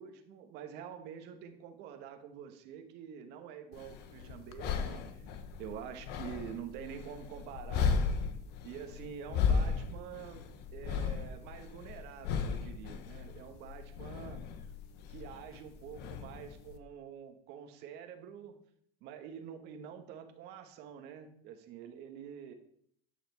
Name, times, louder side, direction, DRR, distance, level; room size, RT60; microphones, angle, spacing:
voice 1, 0.0-5.3 5.6-8.0 8.6-10.4 10.7-14.4 15.1-18.6 19.0-22.5, right 8 dB, 65° right, 6 dB, 1.4 m, -47 dB
sound 1, 3.7-16.8, left 6 dB, 65° left, 1.1 m, -36 dB
11.0 x 4.2 x 7.0 m, 0.65 s
supercardioid pair, 100°, 18 cm